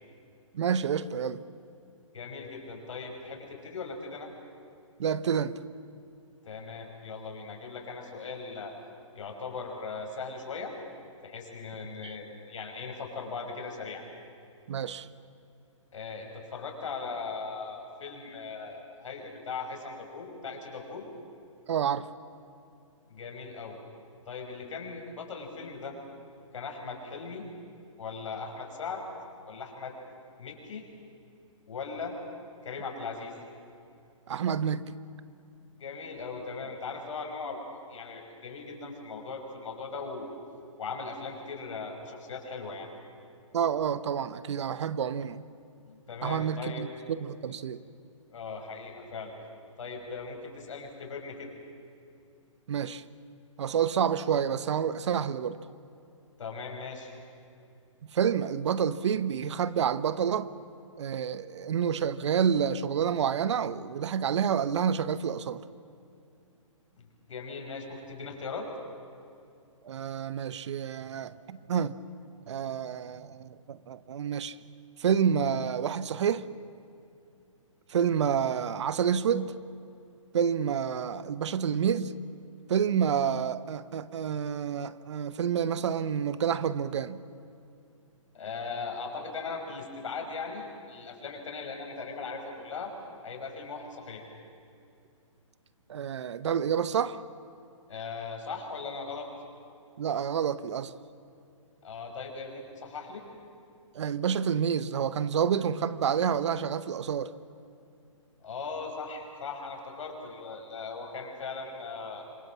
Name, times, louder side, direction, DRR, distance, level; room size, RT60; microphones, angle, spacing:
voice 1, 0.5-1.4 5.0-5.5 12.0-12.1 14.7-15.1 21.7-22.1 34.3-34.9 43.5-45.4 46.2-47.8 52.7-53.0 53.6-55.6 58.1-60.5 61.0-65.6 69.8-71.9 72.5-74.6 75.0-76.4 77.9-79.5 80.3-82.1 82.7-87.2 95.9-97.2 100.0-100.9 103.9-107.3, right 8 dB, 60° right, 1.0 m, -28 dB
voice 2, 2.1-4.3 6.4-8.7 9.2-10.7 11.2-14.0 15.9-21.1 23.1-23.8 24.3-26.0 26.5-27.4 28.0-29.0 29.5-29.9 30.4-30.9 31.7-32.2 32.6-33.4 35.8-37.6 37.9-40.4 40.8-42.9 45.9-46.8 48.3-49.3 49.8-51.5 56.4-57.1 67.0-68.7 88.3-92.9 93.2-94.3 97.9-99.3 101.8-103.2 108.4-112.2, left 4 dB, 65° left, 5.8 m, -39 dB
27.0 x 22.0 x 7.4 m
hypercardioid pair, 140°, 17 cm